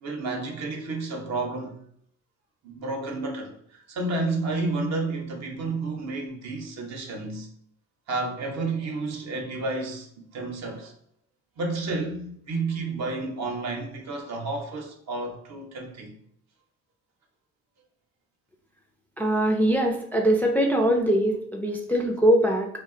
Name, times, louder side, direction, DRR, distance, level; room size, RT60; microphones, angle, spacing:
voice 1, 0.0-1.8 2.6-7.5 8.1-10.1 10.3-10.9 11.6-16.2, right 3 dB, 60° right, 0.7 m, -31 dB
voice 2, 19.2-22.7, right 1 dB, 5° left, 0.3 m, -22 dB
2.4 x 2.2 x 3.6 m
cardioid pair, 90°, 30 cm